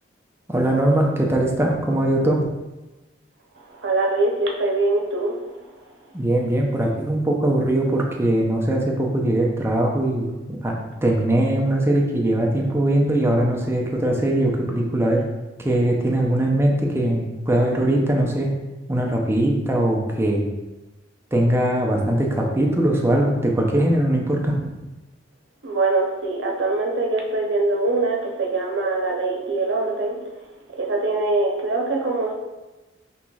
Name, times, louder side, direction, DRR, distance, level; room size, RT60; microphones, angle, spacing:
voice 1, 0.5-2.5 6.1-10.7 11.0-15.2 15.6-18.5 18.9-20.5 21.3-24.7, right 1 dB, 15° right, -1 dB, 0.5 m, -21 dB
voice 2, 3.8-5.4 25.6-30.2 30.8-32.3, right 2 dB, 80° right, -1 dB, 0.7 m, -23 dB
5.5 x 3.0 x 2.3 m, 1.1 s
head